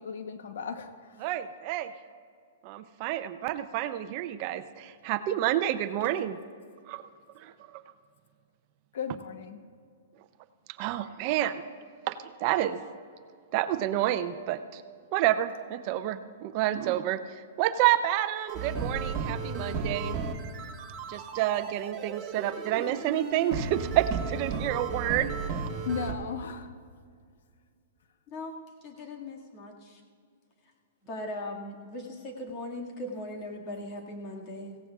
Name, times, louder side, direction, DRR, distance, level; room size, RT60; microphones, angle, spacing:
voice 1, 0.0-1.2 8.9-9.6 25.8-26.7, left 6 dB, 75° left, 8 dB, 1.0 m, -36 dB
voice 2, 1.2-1.9 2.6-6.4 6.9-7.0 7.4-7.8 10.8-11.6 12.1-12.8 13.5-14.8 15.1-17.2 17.6-20.2 21.1-25.4, right 13 dB, 40° right, 11 dB, 0.5 m, -29 dB
sound 1, 18.5-26.1, right 4 dB, 25° right, 1.6 m, -34 dB
voice 3, 28.3-30.0 31.1-34.8, left 1 dB, 35° left, 0 dB, 2.0 m, -39 dB
18.0 x 16.5 x 2.4 m, 2.2 s
hypercardioid pair, 145°, 0 cm